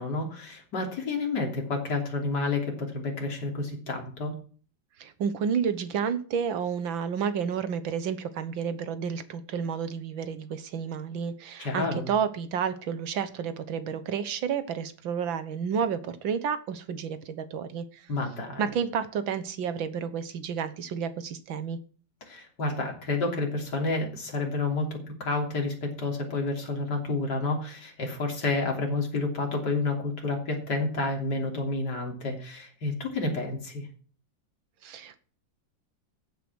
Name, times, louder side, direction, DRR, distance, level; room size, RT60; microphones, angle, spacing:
voice 1, 0.0-4.4 11.6-12.1 18.1-18.6 22.3-33.9, left 3 dB, 60° left, 1 dB, 3.7 m, -30 dB
voice 2, 5.0-18.1 18.6-21.8 34.8-35.2, right 7 dB, 85° right, 12 dB, 1.9 m, -31 dB
14.5 x 8.4 x 6.2 m, 0.42 s
omnidirectional pair, 2.1 m